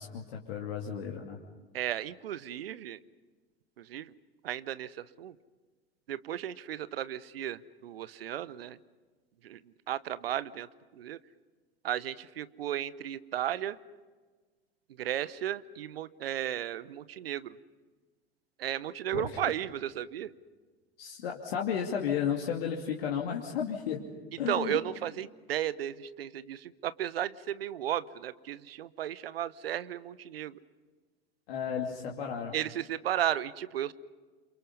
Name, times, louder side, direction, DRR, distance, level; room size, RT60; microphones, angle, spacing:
voice 1, 0.0-1.4 19.1-19.5 21.0-24.0 24.4-24.8 31.5-32.5, left 8 dB, 60° left, 0 dB, 2.7 m, -33 dB
voice 2, 1.7-3.0 3.8-4.1 4.4-5.3 6.1-8.8 9.4-9.6 9.9-10.7 10.9-11.2 11.8-13.8 15.0-17.6 18.6-20.3 24.5-30.6 32.5-33.9, right 11 dB, 65° right, 17 dB, 1.0 m, -34 dB
29.0 x 27.5 x 5.5 m, 1.4 s
figure-of-eight pair, 80°, 32 cm